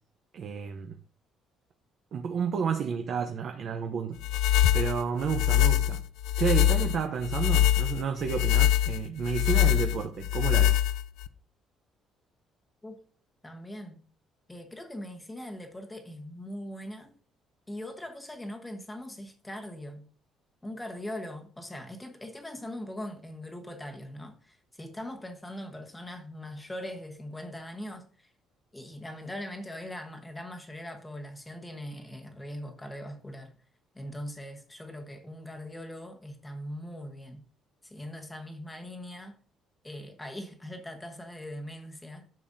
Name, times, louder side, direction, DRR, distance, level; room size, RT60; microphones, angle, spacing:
voice 1, 0.3-1.0 2.1-4.2 4.7-6.0 6.4-10.8, right 6 dB, 45° right, 0.7 m, -31 dB
sound 1, 4.2-11.3, left 12 dB, 80° left, 0.4 m, -24 dB
voice 2, 13.4-14.0 14.5-17.2 17.7-20.1 20.6-28.3 28.7-33.5 33.9-37.4 37.8-39.4 39.8-42.2, left 1 dB, 10° left, 1.2 m, -41 dB
10.5 x 6.9 x 2.7 m
cardioid pair, 175°, 0 cm